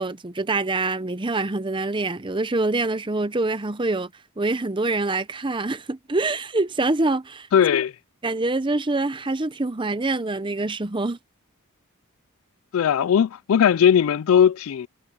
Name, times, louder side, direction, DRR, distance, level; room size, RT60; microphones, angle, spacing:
voice 1, 0.0-4.1 4.4-7.5 8.2-11.2, right 2 dB, 20° right, 0.7 m, -25 dB
voice 2, 7.5-7.9 12.7-14.9, left 8 dB, 65° left, 0.3 m, -18 dB
head